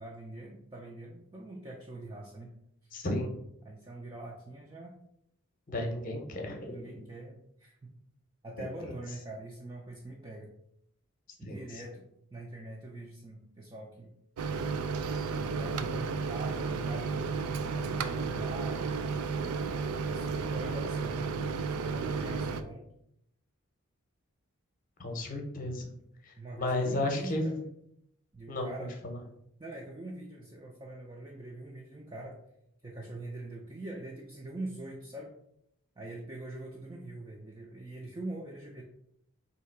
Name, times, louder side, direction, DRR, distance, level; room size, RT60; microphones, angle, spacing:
voice 1, 0.0-2.5 3.6-5.0 6.7-7.9 8.4-10.5 11.4-12.0 12.3-14.1 15.4-19.1 20.0-21.4 21.8-22.8 26.4-27.5 28.3-28.9 29.6-32.4 32.8-35.3 36.0-38.8, right 2 dB, 20° right, -2 dB, 0.4 m, -43 dB
voice 2, 2.9-3.3 5.7-6.8 8.6-8.7 11.4-11.8 25.0-25.9 26.2-27.6 28.5-28.7 29.0-29.2, left 1 dB, 40° left, 3 dB, 0.7 m, -33 dB
Microwave oven, 14.4-22.6, right 4 dB, 90° right, 0.4 m, -33 dB
3.3 x 2.8 x 4.4 m, 0.75 s
head